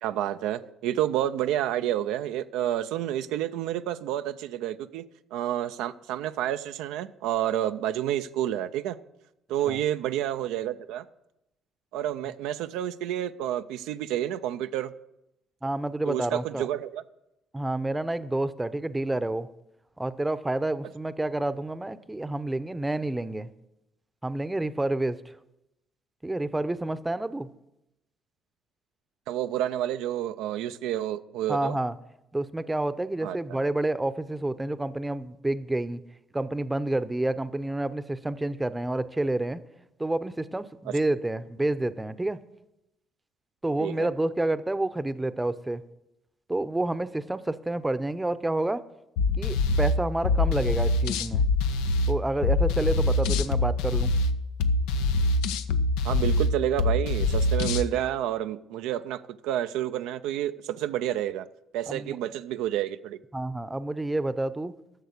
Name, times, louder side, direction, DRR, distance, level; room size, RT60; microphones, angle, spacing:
voice 1, 0.0-5.0 5.3-9.0 9.5-11.0 11.9-14.9 16.1-17.0 29.3-31.8 33.2-33.4 40.9-41.0 43.8-44.1 56.0-61.4 61.7-63.2, right 12 dB, 80° right, 10 dB, 0.4 m, -29 dB
voice 2, 15.6-16.7 17.5-19.5 20.0-23.5 24.2-25.3 26.2-27.5 31.5-32.0 32.3-36.0 36.3-39.6 40.0-42.4 43.6-45.8 46.5-48.8 49.4-51.5 52.1-54.1 61.9-62.2 63.3-64.7, right 2 dB, 15° right, 14 dB, 0.7 m, -29 dB
sound 1, 49.2-57.9, left 2 dB, 85° left, 0.6 m, -25 dB
11.0 x 6.7 x 6.6 m, 0.86 s
supercardioid pair, 65°, 0 cm